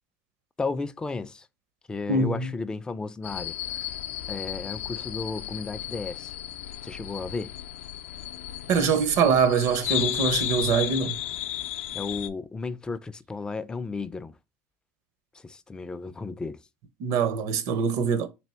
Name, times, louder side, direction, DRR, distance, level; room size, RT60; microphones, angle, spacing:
voice 1, 0.6-1.5 1.9-3.8 4.3-6.4 6.8-7.5 11.9-14.3 15.4-16.6, left 4 dB, 10° left, 0.3 m, -34 dB
voice 2, 2.1-2.5 8.7-11.2 17.0-18.3, right 5 dB, 55° right, 0.7 m, -23 dB
sound 1, 3.2-12.3, left 13 dB, 90° left, 0.4 m, -34 dB
3.4 x 2.8 x 4.3 m
supercardioid pair, 130°, 6 cm